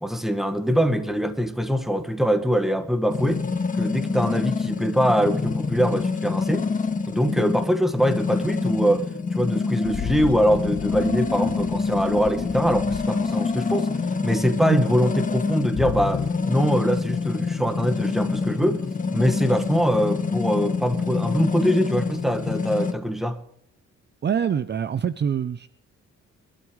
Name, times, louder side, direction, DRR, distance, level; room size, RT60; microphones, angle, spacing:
voice 1, 0.0-3.4 3.8-6.7 7.1-13.9 14.2-18.8 19.1-23.4, equal, ahead, 1.7 m, -23 dB
sound 1, 3.1-22.9, left 4 dB, 25° left, 1.6 m, -26 dB
sound 2, 9.8-13.7 15.7-16.3, left 7 dB, 45° left, 1.3 m, -34 dB
voice 2, 24.2-25.7, right 8 dB, 35° right, 0.6 m, -25 dB
24.0 x 12.5 x 3.2 m
cardioid pair, 90°, 30 cm